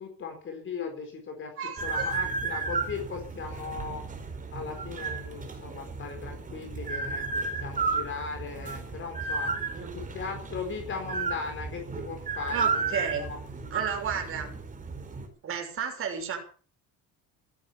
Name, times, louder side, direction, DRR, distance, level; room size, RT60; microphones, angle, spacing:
voice 1, 0.0-1.5 1.8-4.0 4.5-9.5 9.9-13.4, left 5 dB, 35° left, 4 dB, 4.3 m, -38 dB
voice 2, 1.6-2.2 9.7-10.0 12.5-13.3 13.7-14.5 15.4-16.4, right 7 dB, 40° right, 2 dB, 6.3 m, -33 dB
sound 1, 1.8-15.3, right 4 dB, 25° right, 4.5 m, -33 dB
16.0 x 12.0 x 7.1 m, 0.41 s
cardioid pair, 145°, 35 cm